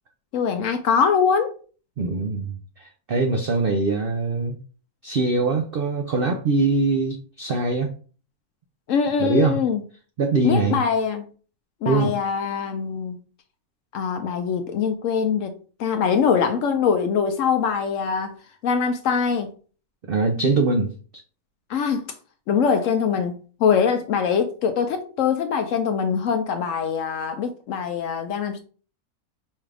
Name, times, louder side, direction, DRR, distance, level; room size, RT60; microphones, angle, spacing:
voice 1, 0.3-1.6 8.9-9.8 10.4-11.3 11.8-13.2 13.9-18.4 18.6-19.5 21.7-22.1 22.5-28.6, left 6 dB, 70° left, 0.8 m, -23 dB
voice 2, 2.0-4.6 5.0-7.9 9.2-9.6 10.2-10.8 11.8-12.1 20.1-20.9, right 3 dB, 75° right, 0.5 m, -22 dB
5.4 x 2.4 x 3.3 m
omnidirectional pair, 1.6 m